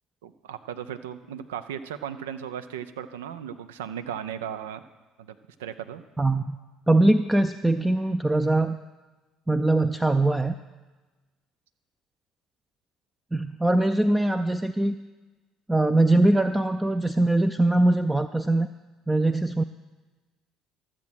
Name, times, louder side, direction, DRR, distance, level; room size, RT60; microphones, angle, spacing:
voice 1, 0.2-4.8 5.2-6.0, right 9 dB, 75° right, 11 dB, 0.5 m, -36 dB
voice 2, 6.2-6.6 6.9-8.8 9.5-10.5 13.3-15.0 15.7-18.7 19.1-19.6, right 2 dB, 10° right, 9 dB, 0.4 m, -22 dB
12.5 x 7.4 x 6.2 m, 1.2 s
figure-of-eight pair, 55°, 0 cm